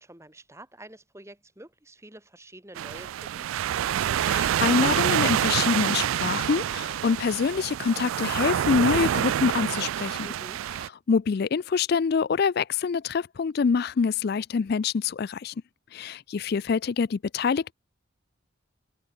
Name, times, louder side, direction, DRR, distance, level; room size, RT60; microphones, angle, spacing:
voice 1, 0.0-3.5 10.2-10.6, right 1 dB, 15° right, 3.2 m, -48 dB
sound 1, 2.8-10.9, right 10 dB, 75° right, 0.3 m, -27 dB
voice 2, 4.2-10.3 11.1-15.5 15.9-17.7, left 5 dB, 50° left, 0.4 m, -25 dB
head